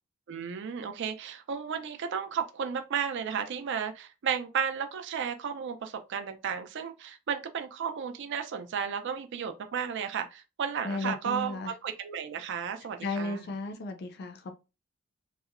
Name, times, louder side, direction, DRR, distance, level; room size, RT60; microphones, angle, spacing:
voice 1, 0.3-13.5, right 7 dB, 60° right, 0.4 m, -33 dB
voice 2, 10.8-11.7 13.0-14.5, left 2 dB, 50° left, 0.4 m, -34 dB
2.7 x 2.0 x 2.4 m
head